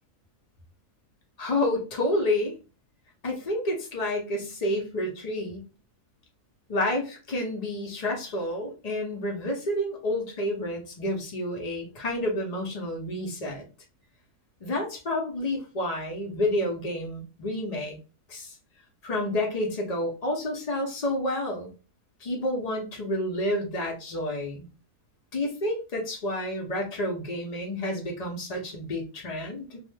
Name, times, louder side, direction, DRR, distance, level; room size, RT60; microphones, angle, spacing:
voice 1, 1.4-2.6 3.2-5.7 6.7-13.7 14.6-17.9 18.3-18.5 19.0-21.7 22.2-24.7 25.3-29.8, left 1 dB, 70° left, 0 dB, 0.3 m, -29 dB
2.6 x 2.1 x 3.2 m, 0.33 s
omnidirectional pair, 1.7 m